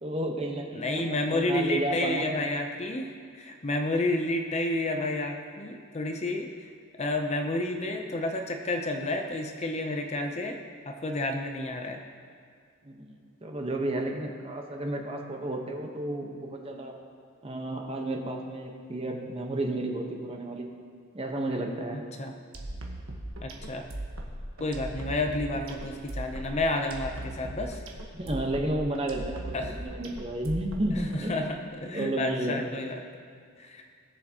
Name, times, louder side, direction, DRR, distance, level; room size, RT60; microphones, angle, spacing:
voice 1, 0.0-2.3 12.8-16.9 17.4-20.7 21.1-22.0 28.1-31.5 31.9-32.6, right 1 dB, 30° right, 1 dB, 1.1 m, -32 dB
voice 2, 0.7-6.7 7.0-10.6 10.9-12.0 22.2-22.3 23.4-23.9 24.6-27.8 29.5-29.7 31.1-33.0 33.6-33.8, left 2 dB, 30° left, 4 dB, 0.6 m, -30 dB
sound 1, 22.5-31.2, right 1 dB, 75° right, 1.3 m, -38 dB
19.5 x 7.2 x 2.9 m, 2.2 s
head